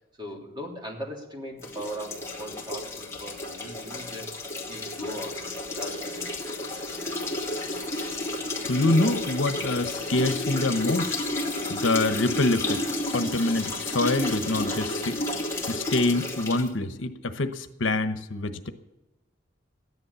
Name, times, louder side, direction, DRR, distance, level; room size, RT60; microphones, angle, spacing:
voice 1, 0.2-4.3 4.7-5.5 5.8-6.2, equal, 25° right, -1 dB, 3.4 m, -39 dB
sound 1, 1.6-16.7, left 2 dB, 15° left, 2.1 m, -32 dB
voice 2, 8.6-11.1 11.7-12.8 13.1-15.2 15.7-18.7, left 2 dB, 75° left, 9 dB, 1.1 m, -25 dB
14.5 x 11.0 x 7.1 m, 1.0 s
head